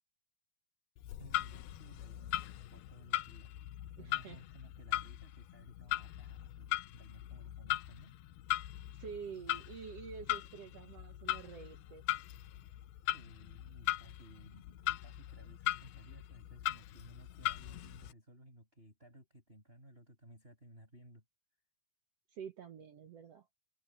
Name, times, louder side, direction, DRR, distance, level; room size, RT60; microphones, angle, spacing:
Clock, 1.0-18.1, left 16 dB, 80° left, 2.8 m, -40 dB
voice 1, 1.2-2.4 2.7-3.6 3.9-8.2 13.1-21.2, right 1 dB, 15° right, 7.9 m, -58 dB
voice 2, 4.0-4.4 8.9-12.0 22.3-23.5, right 6 dB, 70° right, 1.5 m, -48 dB
omnidirectional pair, 4.5 m